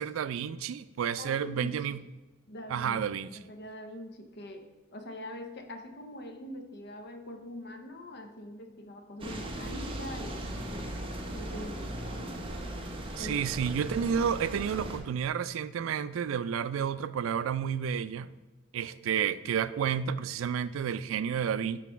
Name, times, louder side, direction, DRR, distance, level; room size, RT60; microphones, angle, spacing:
voice 1, 0.0-2.0 2.7-3.3 13.2-18.3 18.7-21.8, right 8 dB, 85° right, 15 dB, 0.3 m, -31 dB
voice 2, 1.2-1.9 2.5-12.4 13.2-13.4, left 1 dB, 55° left, 7 dB, 0.8 m, -44 dB
sound 1, 9.2-15.0, right 1 dB, 25° right, 0.8 m, -38 dB
6.3 x 4.0 x 5.6 m, 1.1 s
head